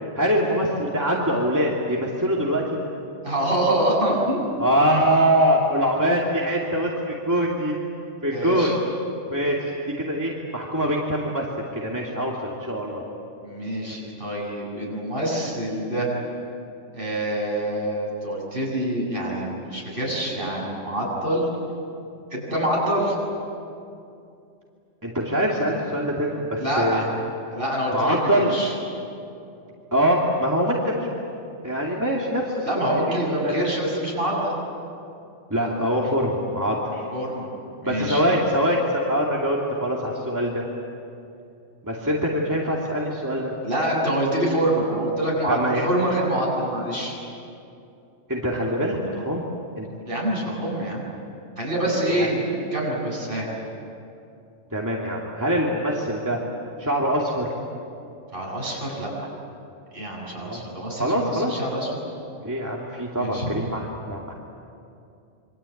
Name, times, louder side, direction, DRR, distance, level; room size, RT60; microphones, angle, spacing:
voice 1, 0.1-2.8 4.6-7.8 8.2-8.7 9.3-9.7 10.0-11.5 11.7-13.0 25.0-27.1 27.9-28.5 29.9-31.1 31.6-33.6 35.5-37.1 37.9-40.6 41.8-43.5 45.5-45.8 48.3-49.5 49.8-49.9 51.8-52.3 54.7-56.4 56.8-57.5 60.4-60.6 61.0-61.6 62.4-64.3, equal, 15° right, -3 dB, 2.7 m, -24 dB
voice 2, 3.2-4.4 8.3-8.8 13.4-16.1 16.9-21.5 22.3-23.1 26.6-27.1 27.5-28.7 32.6-34.5 37.1-37.5 37.8-38.2 43.6-45.6 45.8-47.2 50.1-51.1 51.6-53.5 58.3-59.1 59.9-61.9 63.2-63.5, right 1 dB, 45° right, -3 dB, 7.8 m, -26 dB
27.5 x 25.0 x 8.7 m, 2.6 s
omnidirectional pair, 1.3 m